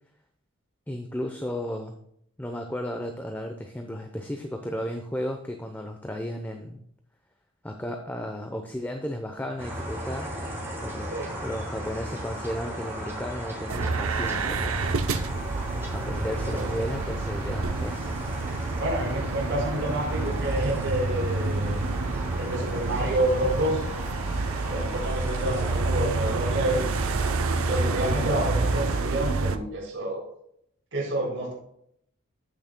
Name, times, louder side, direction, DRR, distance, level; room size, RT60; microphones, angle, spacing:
voice 1, 0.9-2.0 2.4-6.8 7.6-10.3 10.8-11.1 11.4-14.9 15.9-18.1, equal, 10° left, 4 dB, 0.7 m, -34 dB
sound 1, 9.6-29.0, equal, 10° right, 3.0 m, -36 dB
sound 2, 13.7-29.6, right 3 dB, 80° right, 0.6 m, -29 dB
voice 2, 16.4-16.9 18.8-21.8 22.4-23.9 24.7-26.8 27.7-30.3 30.9-31.5, right 1 dB, 60° right, -6 dB, 4.0 m, -28 dB
15.5 x 6.3 x 2.2 m, 0.70 s
head